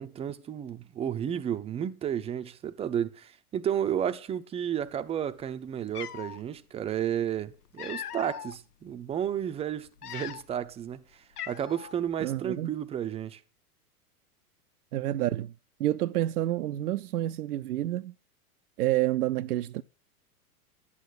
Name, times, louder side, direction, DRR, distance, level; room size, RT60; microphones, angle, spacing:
voice 1, 0.0-13.4, right 9 dB, 15° right, 0.5 m, -32 dB
Cat, 5.4-5.5 5.9-6.4 7.4-8.6 9.1-9.3 9.9-10.7 10.9-11.0 11.4-12.0, left 10 dB, 80° left, 0.8 m, -40 dB
voice 2, 12.2-12.7 14.9-15.5 15.8-18.1 18.8-19.8, right 14 dB, 80° right, 0.6 m, -28 dB
11.5 x 8.5 x 6.4 m
hypercardioid pair, 110°, 45 cm